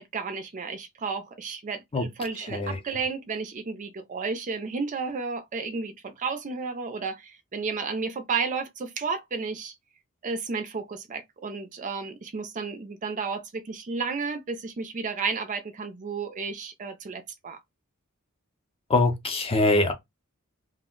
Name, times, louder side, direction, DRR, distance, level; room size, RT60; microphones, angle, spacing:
voice 1, 0.0-9.7 10.2-17.6, right 4 dB, 35° right, 0.4 m, -32 dB
voice 2, 18.9-19.9, left 2 dB, 25° left, 0.5 m, -23 dB
2.4 x 2.0 x 3.7 m
head